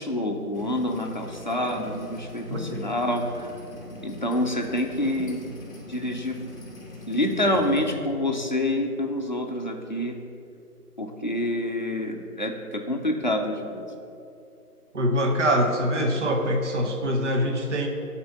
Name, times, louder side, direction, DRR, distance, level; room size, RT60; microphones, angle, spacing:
voice 1, 0.0-3.5 4.0-5.5 5.9-6.4 7.1-10.2 11.0-13.8, left 1 dB, 30° left, 1 dB, 0.6 m, -27 dB
sound 1, 0.5-7.9, left 1 dB, 10° left, 1.0 m, -41 dB
voice 2, 2.5-2.8 14.9-17.9, equal, 50° right, 3 dB, 1.0 m, -24 dB
11.0 x 4.4 x 7.0 m, 2.6 s
figure-of-eight pair, 155°, 46 cm